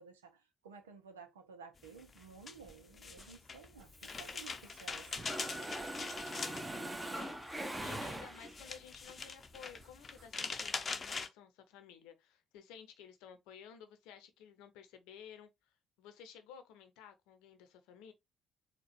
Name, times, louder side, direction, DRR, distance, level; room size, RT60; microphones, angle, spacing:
voice 1, 0.0-5.3 7.5-7.7, right 5 dB, 85° right, 0.7 m, -55 dB
sound 1, 1.8-11.3, left 4 dB, 40° left, 0.7 m, -43 dB
sound 2, 2.7-3.9 4.1-4.3 4.6-4.7 4.9-6.3 6.7-8.3 8.6-10.3, right 3 dB, 45° right, 1.5 m, -62 dB
Mechanisms, 3.9-4.9 5.2-8.7, right 1 dB, 10° right, 1.0 m, -42 dB
voice 2, 5.9-6.8 7.1-7.4 7.8-15.5 16.0-18.1, left 8 dB, 70° left, 0.8 m, -55 dB
4.4 x 2.3 x 4.2 m
figure-of-eight pair, 45°, 0 cm